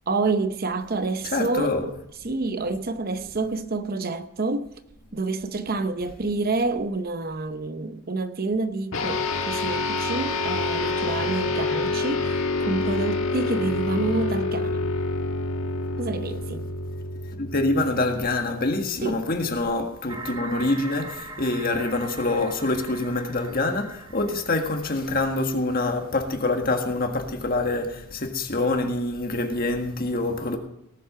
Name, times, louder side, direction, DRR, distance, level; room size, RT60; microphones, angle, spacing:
voice 1, 0.1-1.8 2.2-4.7 5.1-14.9 16.0-16.7 19.0-19.3, right 3 dB, 40° right, 0.7 m, -28 dB
voice 2, 1.3-1.9 17.3-30.6, left 2 dB, 40° left, 1.7 m, -25 dB
sound 1, 8.9-18.6, left 3 dB, 65° left, 1.4 m, -27 dB
sound 2, 20.1-25.8, right 3 dB, 20° right, 1.5 m, -41 dB
18.0 x 7.9 x 5.7 m
head